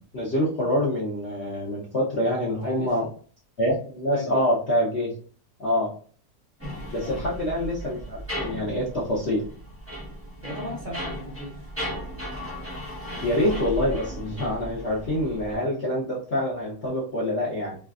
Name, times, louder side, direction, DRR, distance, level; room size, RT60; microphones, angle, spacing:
voice 1, 0.1-3.0 3.6-5.1 5.6-5.9 6.9-9.4 13.2-17.8, left 1 dB, 45° left, -7 dB, 1.0 m, -26 dB
voice 2, 2.6-3.0 4.1-4.5 7.0-7.2 10.4-11.7, equal, 45° right, -4 dB, 0.6 m, -36 dB
sound 1, 6.6-15.6, equal, 10° right, 0.8 m, -36 dB
3.1 x 2.4 x 2.4 m, 0.42 s
omnidirectional pair, 1.8 m